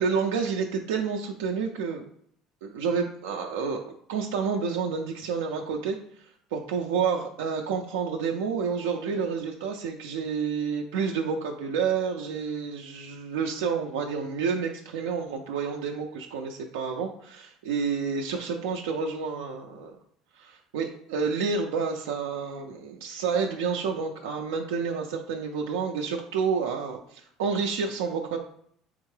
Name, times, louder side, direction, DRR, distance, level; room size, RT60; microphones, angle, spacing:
voice 1, 0.0-2.1 2.6-20.0 20.4-28.4, right 5 dB, 90° right, 2 dB, 0.4 m, -29 dB
3.6 x 3.5 x 3.2 m, 0.64 s
supercardioid pair, 85°, 0 cm